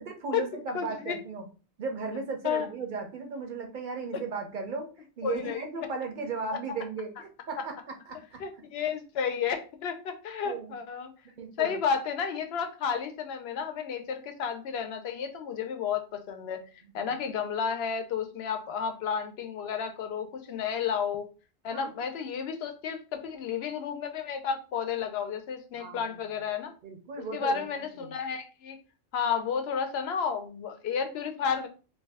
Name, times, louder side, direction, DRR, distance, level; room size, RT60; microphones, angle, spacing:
voice 1, 0.0-1.4 1.8-4.9 5.2-8.4 10.4-10.8 11.4-11.8 16.8-17.1 21.7-21.9 25.8-26.2 26.8-28.1, right 4 dB, 50° right, 3 dB, 0.6 m, -36 dB
voice 2, 0.7-1.2 2.4-2.7 5.2-5.6 8.4-11.1 11.6-16.6 16.9-21.3 21.6-26.7 27.2-28.8 29.1-31.7, left 7 dB, 65° left, 6 dB, 0.7 m, -32 dB
2.6 x 2.2 x 3.3 m, 0.34 s
omnidirectional pair, 1.3 m